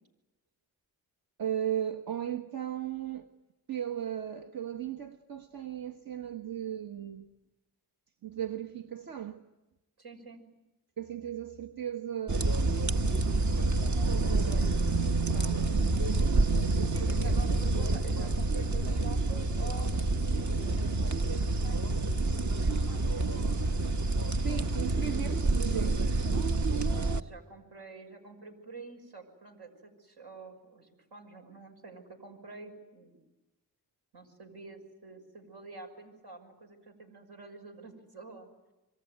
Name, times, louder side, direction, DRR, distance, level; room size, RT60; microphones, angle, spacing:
voice 1, 1.4-3.3 3.7-7.2 8.2-9.4 11.0-12.5 13.9-15.9 16.7-17.4 24.4-26.2, right 10 dB, 65° right, 1.3 m, -37 dB
voice 2, 10.0-10.4 16.9-23.3 26.9-33.2 34.1-38.5, right 3 dB, 80° right, 6.4 m, -48 dB
sound 1, 12.3-27.2, right 2 dB, 45° right, 1.2 m, -28 dB
26.5 x 23.5 x 9.4 m
cardioid pair, 75°, 39 cm